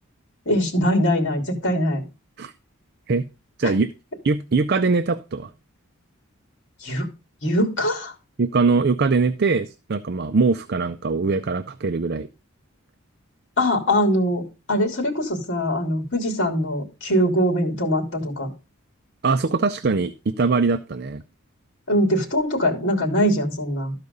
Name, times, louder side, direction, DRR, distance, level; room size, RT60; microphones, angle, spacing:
voice 1, 0.4-2.0 3.6-3.7 6.8-7.1 7.4-8.1 13.6-18.5 21.9-23.9, equal, 55° left, 3 dB, 2.9 m, -22 dB
voice 2, 4.2-5.5 8.4-12.3 19.2-21.2, right 4 dB, 50° right, 10 dB, 0.5 m, -22 dB
13.0 x 4.8 x 5.3 m, 0.30 s
head